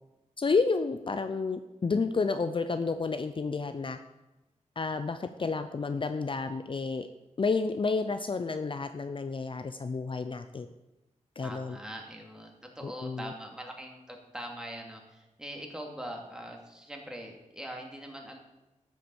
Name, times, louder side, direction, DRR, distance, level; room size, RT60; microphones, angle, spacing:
voice 1, 0.4-4.0 4.8-7.1 7.4-10.7 11.4-11.8 12.8-13.3, left 4 dB, 45° left, 9 dB, 0.6 m, -30 dB
voice 2, 11.4-18.4, equal, 5° right, 1 dB, 2.6 m, -42 dB
13.5 x 7.5 x 7.2 m, 1.0 s
wide cardioid pair, 100°, 12 cm